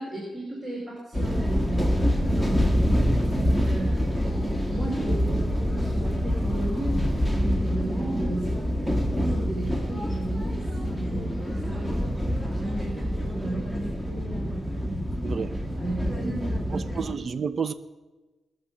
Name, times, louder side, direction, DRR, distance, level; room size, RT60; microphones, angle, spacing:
voice 1, 0.0-2.5 3.3-7.0 7.3-8.6 9.2-11.9 12.6-15.0 15.8-17.1, right 1 dB, 35° right, 3.2 m, -35 dB
sound 1, 1.1-17.1, equal, 15° right, 1.7 m, -26 dB
voice 2, 15.2-15.5 16.7-17.7, right 6 dB, 50° right, 0.4 m, -30 dB
20.0 x 7.4 x 6.2 m
cardioid pair, 105°, 0 cm